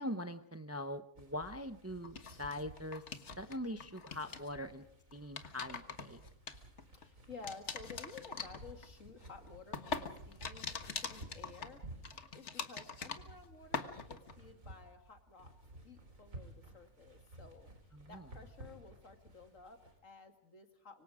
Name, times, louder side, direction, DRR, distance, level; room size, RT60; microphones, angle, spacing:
voice 1, 0.0-4.8 5.1-6.3 17.9-18.3, left 1 dB, 15° right, 10 dB, 0.7 m, -42 dB
sound 1, 1.2-20.0, right 1 dB, 90° right, 4.4 m, -55 dB
sound 2, 2.0-3.6 3.8-4.5 5.1-7.0 7.4-13.5 13.7-14.3, left 5 dB, 60° left, 1.7 m, -43 dB
voice 2, 6.9-11.8 12.3-15.5 15.8-17.7 18.1-21.0, left 4 dB, 75° left, 6 dB, 2.6 m, -54 dB
25.0 x 25.0 x 5.0 m, 0.69 s
omnidirectional pair, 1.3 m